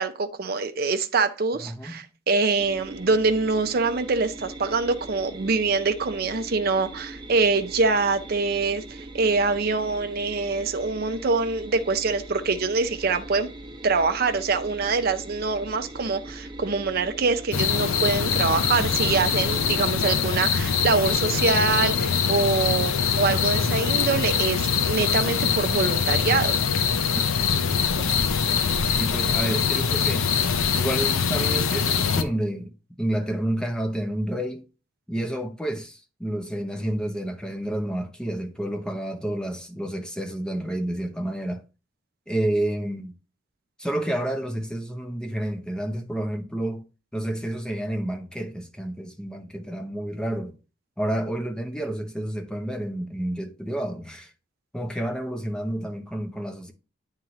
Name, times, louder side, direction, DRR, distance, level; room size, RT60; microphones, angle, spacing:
voice 1, 0.0-13.5 13.8-26.6, right 4 dB, 50° right, 0.5 m, -24 dB
voice 2, 1.6-2.1 29.0-30.3 30.7-34.6 35.1-41.6 42.3-43.1 43.8-46.8 47.1-50.6 51.0-54.3 54.7-56.7, right 1 dB, 5° left, 0.6 m, -29 dB
sound 1, 2.6-19.8, right 1 dB, 25° right, 0.8 m, -41 dB
sound 2, 17.5-32.2, left 6 dB, 90° left, 0.6 m, -23 dB
9.2 x 3.7 x 3.0 m
head